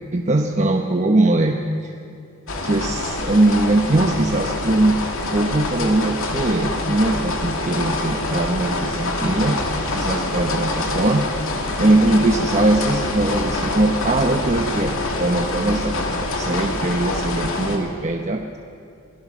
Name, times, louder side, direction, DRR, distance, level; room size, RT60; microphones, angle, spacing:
voice 1, 0.1-1.6 1.8-1.9 2.6-5.0 5.3-9.6 9.9-11.3 11.8-18.6, right 2 dB, 35° right, 3 dB, 1.0 m, -20 dB
sound 1, 2.5-17.8, left 2 dB, 80° left, 2.5 m, -25 dB
27.5 x 17.5 x 6.2 m, 2.4 s
head